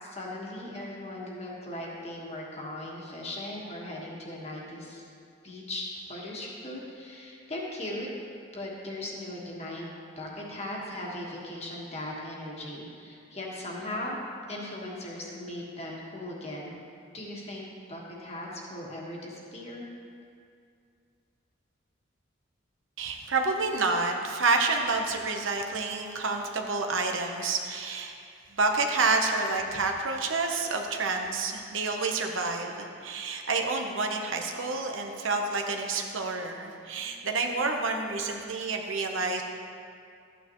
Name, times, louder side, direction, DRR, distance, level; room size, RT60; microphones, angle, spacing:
voice 1, 0.0-5.0 5.4-8.1 8.5-9.9 10.2-14.2 14.5-16.7 17.1-19.8, left 1 dB, 30° left, -3 dB, 1.5 m, -38 dB
voice 2, 23.0-28.2 28.5-39.4, right 3 dB, 80° right, 3 dB, 0.9 m, -29 dB
13.5 x 9.1 x 3.1 m, 2.4 s
head